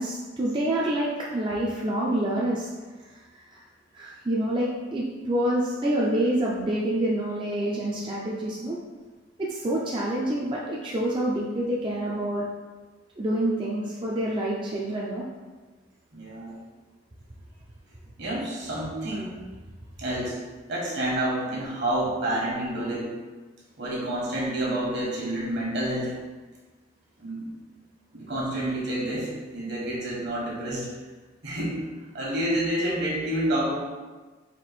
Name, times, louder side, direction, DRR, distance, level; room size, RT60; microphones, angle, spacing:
voice 1, 0.0-2.7 3.0-3.6 3.9-8.8 9.4-12.5 13.2-15.2, right 1 dB, 25° right, -5 dB, 0.4 m, -27 dB
voice 2, 16.1-16.5 18.2-19.4 20.0-20.4 20.7-23.1 23.8-26.2 27.2-27.5 28.1-30.9 31.4-31.8 32.1-33.7, right 1 dB, 60° right, -4 dB, 1.4 m, -28 dB
4.3 x 2.5 x 4.1 m, 1.3 s
head